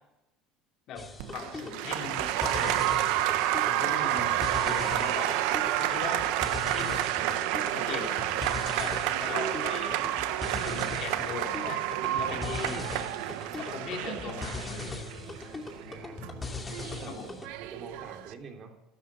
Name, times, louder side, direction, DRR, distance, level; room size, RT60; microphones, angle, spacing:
voice 1, 0.9-2.9 3.7-6.3 6.7-7.4 7.7-10.0 10.6-12.8 13.5-15.0 17.1-17.3, left 6 dB, 55° left, 2 dB, 3.8 m, -40 dB
sound 1, 1.0-17.5, left 3 dB, 20° left, 2.6 m, -40 dB
Applause, 1.2-18.3, right 13 dB, 80° right, 1.0 m, -30 dB
voice 2, 12.7-13.1 15.9-16.2 17.0-18.8, right 5 dB, 45° right, 3 dB, 3.3 m, -46 dB
13.5 x 13.0 x 7.2 m, 0.94 s
supercardioid pair, 105°, 0 cm